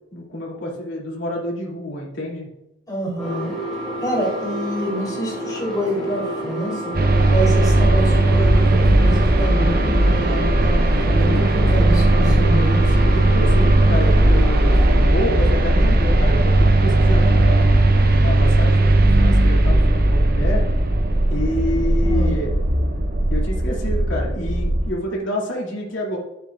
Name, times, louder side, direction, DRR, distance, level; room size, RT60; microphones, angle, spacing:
voice 1, 0.1-2.5 12.7-17.6 18.1-20.7 21.3-22.5 23.3-26.2, equal, 75° left, -3 dB, 2.4 m, -28 dB
voice 2, 2.9-3.5 4.0-6.9 7.3-13.0 22.0-22.3, right 1 dB, 20° left, -3 dB, 3.1 m, -27 dB
sound 1, 3.2-15.1, equal, 5° left, 3.1 m, -29 dB
sound 2, 6.9-24.9, right 1 dB, 45° right, 0.7 m, -16 dB
10.5 x 7.8 x 2.4 m, 0.95 s
head